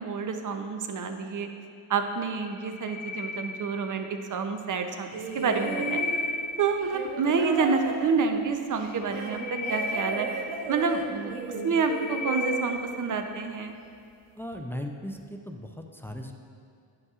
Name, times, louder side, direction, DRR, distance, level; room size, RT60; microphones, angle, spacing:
voice 1, 0.0-1.5 1.9-5.1 5.3-6.0 6.6-10.3 10.7-11.3 11.6-13.7, right 5 dB, 40° right, 6 dB, 0.7 m, -28 dB
sound 1, 2.5-4.1 5.1-6.9 8.9-11.0 11.5-13.0, left 3 dB, 65° left, 0.9 m, -35 dB
sound 2, 5.1-13.5 14.5-14.6, right 4 dB, 90° right, 0.7 m, -35 dB
voice 2, 14.3-16.3, left 1 dB, 5° left, 4 dB, 0.4 m, -37 dB
9.5 x 5.3 x 2.4 m, 2.4 s
supercardioid pair, 55°, 49 cm